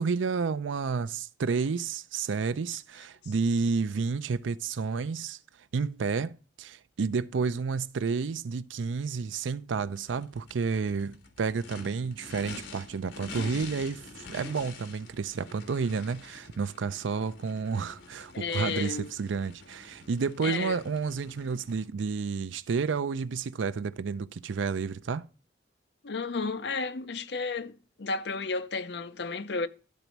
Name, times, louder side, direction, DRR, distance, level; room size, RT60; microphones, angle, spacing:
voice 1, 0.0-5.4 5.7-25.3, right 5 dB, 85° right, 0.5 m, -30 dB
Race car auto racing / Idling / Accelerating revving vroom, 9.8-21.9, left 3 dB, 80° left, 1.7 m, -46 dB
voice 2, 18.3-19.1 20.4-20.8 26.0-29.7, left 4 dB, 65° left, 0.6 m, -32 dB
12.0 x 4.0 x 4.5 m
head